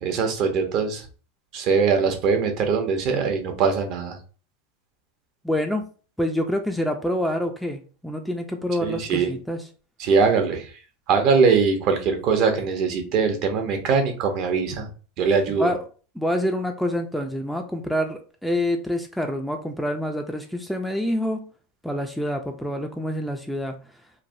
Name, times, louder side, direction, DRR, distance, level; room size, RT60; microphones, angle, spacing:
voice 1, 0.0-1.0 1.5-4.2 8.8-9.3 10.0-10.7 11.1-14.9 15.2-15.7, right 5 dB, 50° right, 5 dB, 0.7 m, -21 dB
voice 2, 5.4-5.8 6.2-9.6 15.5-15.8 16.2-21.4 21.8-23.8, left 1 dB, ahead, 4 dB, 0.3 m, -27 dB
3.2 x 2.0 x 2.5 m, 0.38 s
supercardioid pair, 120°, 0 cm